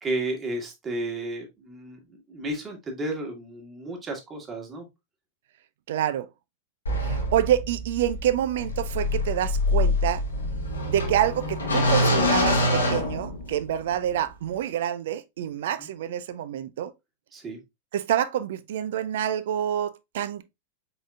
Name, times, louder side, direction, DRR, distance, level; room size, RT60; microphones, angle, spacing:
voice 1, 0.0-4.9 15.8-15.9 17.3-17.6, right 1 dB, 20° right, 1.5 m, -33 dB
voice 2, 5.9-6.3 7.0-10.2 10.9-16.9 17.9-20.4, right 11 dB, 55° right, 0.4 m, -27 dB
sound 1, 6.9-13.8, left 1 dB, 75° left, 1.1 m, -25 dB
4.9 x 3.8 x 2.3 m
figure-of-eight pair, 90°, 0 cm